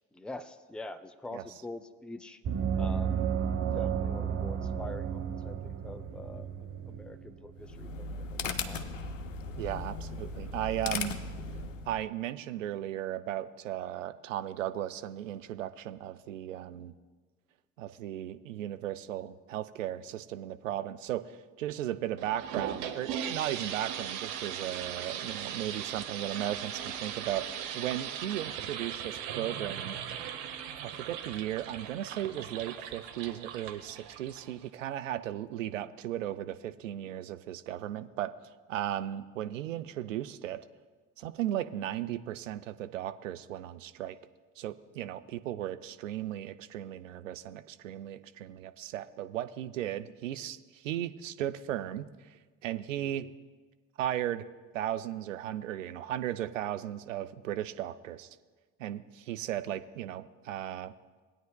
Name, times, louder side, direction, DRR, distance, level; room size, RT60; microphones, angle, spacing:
voice 1, 0.1-2.4 2.7-3.4 3.7-6.5 6.9-8.8, left 2 dB, 5° left, 11 dB, 0.5 m, -44 dB
Gong, 2.4-7.7, right 7 dB, 35° right, 1.0 m, -33 dB
sound 1, 7.6-12.0, left 3 dB, 80° left, 0.6 m, -37 dB
voice 2, 9.6-11.2 11.9-16.9 17.8-30.0 30.8-38.3 38.7-40.6 41.2-44.2 44.6-53.3 54.0-54.4 54.7-58.3 58.8-60.9, right 12 dB, 80° right, 12 dB, 0.5 m, -36 dB
sound 2, 22.2-34.7, right 9 dB, 65° right, 0.9 m, -39 dB
19.0 x 9.1 x 2.2 m, 1.4 s
figure-of-eight pair, 50°, 38 cm